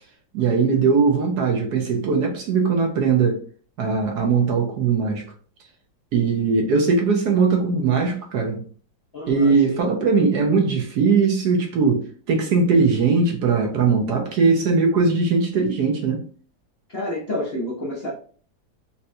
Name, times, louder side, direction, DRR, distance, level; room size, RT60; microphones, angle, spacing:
voice 1, 0.3-3.4 3.8-5.2 6.1-8.6 9.3-16.2, right 4 dB, 70° right, 2 dB, 1.1 m, -20 dB
voice 2, 9.1-9.8 16.9-18.1, left 1 dB, 45° left, -6 dB, 0.8 m, -29 dB
4.1 x 2.2 x 2.6 m, 0.43 s
omnidirectional pair, 2.0 m